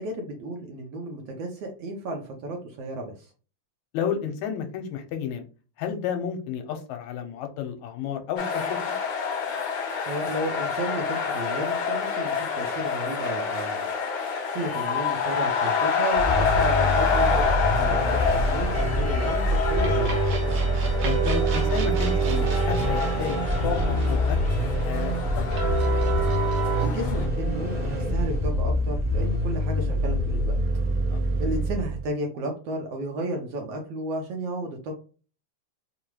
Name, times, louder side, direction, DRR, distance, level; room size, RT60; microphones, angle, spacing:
voice 1, 0.0-3.1 10.1-13.9 14.5-17.4 17.7-20.1 26.8-30.6 31.4-34.9, right 1 dB, 70° right, 2 dB, 1.7 m, -33 dB
voice 2, 3.9-5.4 5.8-8.8 17.9-18.0 21.0-23.4 23.6-25.4 31.1-31.2, left 8 dB, 80° left, 5 dB, 1.9 m, -31 dB
sound 1, 8.4-27.3, left 6 dB, 60° left, 1.5 m, -28 dB
Vehicle, 16.1-32.1, equal, 50° right, 0.9 m, -25 dB
sound 2, 18.7-26.9, right 10 dB, 85° right, 2.4 m, -30 dB
5.0 x 2.2 x 3.0 m, 0.36 s
omnidirectional pair, 3.4 m